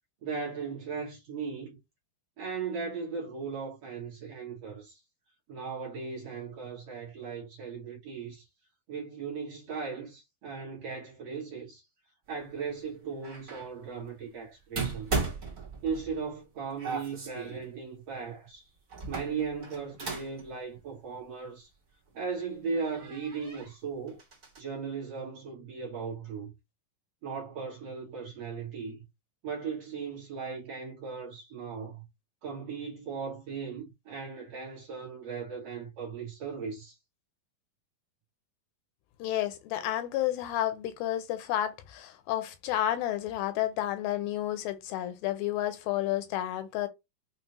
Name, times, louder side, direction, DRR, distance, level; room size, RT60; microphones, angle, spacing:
voice 1, 0.2-1.8 2.4-5.0 5.5-8.5 8.9-11.8 12.3-15.3 15.8-18.7 19.1-21.7 22.1-24.2 24.6-26.5 27.2-29.0 29.4-32.0 32.4-37.0, right 5 dB, 65° right, 1.8 m, -37 dB
sound 1, 13.2-13.7 14.7-16.2 16.8-17.7 18.9-20.4 20.7-20.8 22.1-22.2 22.7-23.7 24.1-24.6, right 4 dB, 45° right, 1.0 m, -36 dB
voice 2, 39.2-46.9, left 13 dB, 85° left, 2.4 m, -31 dB
5.8 x 2.1 x 2.9 m
omnidirectional pair, 4.1 m